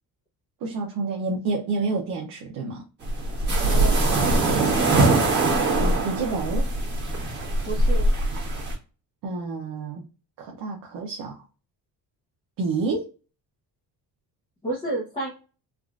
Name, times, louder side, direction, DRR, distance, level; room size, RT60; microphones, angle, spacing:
voice 1, 0.6-2.8 5.8-6.7 9.2-10.0 10.4-11.4 12.6-13.1, right 3 dB, 65° right, 0.7 m, -29 dB
sound 1, 3.0-8.7, right 2 dB, 30° right, 1.2 m, -22 dB
voice 2, 3.6-4.1 7.6-8.1 14.6-15.3, right 2 dB, 15° left, 0.7 m, -30 dB
3.6 x 2.4 x 2.4 m
cardioid pair, 165°, 38 cm